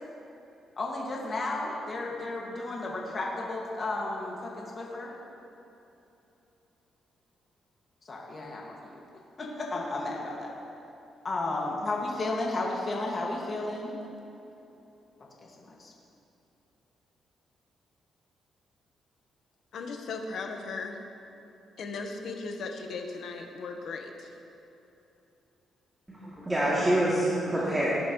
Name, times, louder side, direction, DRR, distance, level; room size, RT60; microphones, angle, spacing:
voice 1, 0.8-5.1 8.0-8.9 9.4-10.5 11.2-13.9 15.4-15.9, left 2 dB, 40° left, -3 dB, 2.0 m, -33 dB
voice 2, 19.7-21.0 21.8-24.3, left 4 dB, 70° left, 3 dB, 1.2 m, -37 dB
voice 3, 26.1-27.9, right 1 dB, 15° right, -8 dB, 2.7 m, -26 dB
18.0 x 11.0 x 3.2 m, 2.9 s
cardioid pair, 105°, 0 cm